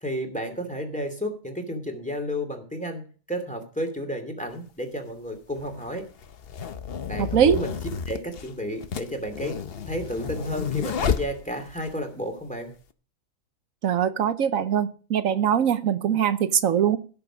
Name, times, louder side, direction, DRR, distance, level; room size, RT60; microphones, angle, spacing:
voice 1, 0.0-6.0 7.1-7.8 8.1-9.6 9.9-12.7, equal, 5° left, 4 dB, 2.6 m, -32 dB
sound 1, 4.5-4.6 5.5-11.9, left 7 dB, 50° left, 0.9 m, -31 dB
voice 2, 7.2-7.6 13.8-17.0, right 9 dB, 75° right, 13 dB, 1.2 m, -22 dB
16.5 x 6.8 x 5.1 m, 0.39 s
omnidirectional pair, 1.4 m